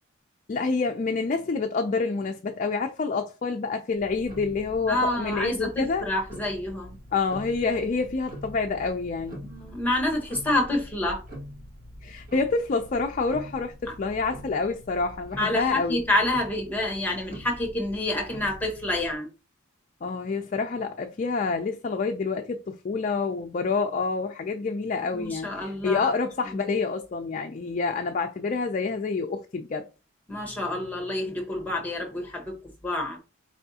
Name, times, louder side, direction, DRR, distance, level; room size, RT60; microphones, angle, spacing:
voice 1, 0.5-6.0 7.1-9.4 12.0-16.0 20.0-29.9, left 4 dB, 35° left, 0.4 m, -27 dB
Tick-tock, 3.9-19.2, equal, 40° right, 1.6 m, -44 dB
voice 2, 4.9-6.9 9.4-11.2 15.4-19.3 25.1-26.1 30.3-32.6 32.8-33.2, left 1 dB, 10° left, 1.1 m, -28 dB
4.7 x 3.4 x 2.7 m
head